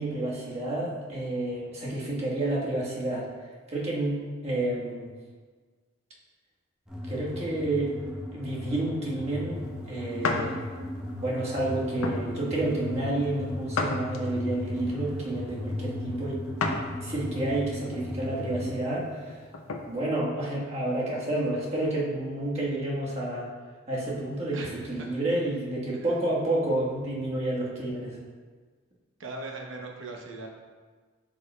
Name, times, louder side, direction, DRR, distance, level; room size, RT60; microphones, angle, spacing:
voice 1, 0.0-3.3 3.7-5.1 7.1-7.9 8.3-9.6 9.9-10.6 11.2-16.4 17.0-19.4 19.8-23.5 23.9-28.2, right 1 dB, 30° right, -5 dB, 1.3 m, -30 dB
sound 1, 6.9-18.7, left 1 dB, 5° right, 0.9 m, -36 dB
Setting Down Cup, 10.2-10.5 11.1-11.3 12.0-12.3 13.7-14.5 16.6-16.9 17.4-17.5 19.2-19.9, left 3 dB, 85° left, 0.6 m, -30 dB
voice 2, 24.5-25.1 25.9-26.1 29.2-30.5, right 2 dB, 65° right, 0 dB, 0.8 m, -39 dB
8.2 x 5.1 x 2.2 m, 1.5 s
head